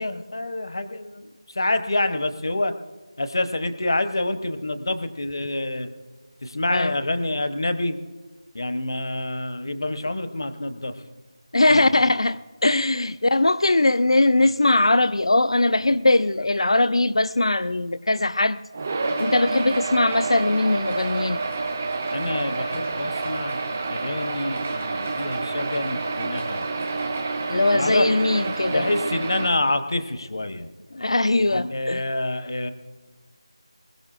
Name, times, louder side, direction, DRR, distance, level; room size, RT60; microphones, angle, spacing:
voice 1, 0.0-2.7 3.2-5.9 6.4-8.0 8.5-11.0 11.7-12.0 22.1-26.7 27.7-28.0 28.7-30.7 31.4-32.7, left 2 dB, 45° left, 0.9 m, -27 dB
voice 2, 11.5-18.6 19.2-21.4 27.5-28.8 30.9-32.0, left 2 dB, 65° left, 0.4 m, -20 dB
sound 1, 18.7-29.5, right 3 dB, 10° right, 0.4 m, -28 dB
21.5 x 16.0 x 2.5 m
figure-of-eight pair, 180°, 3 cm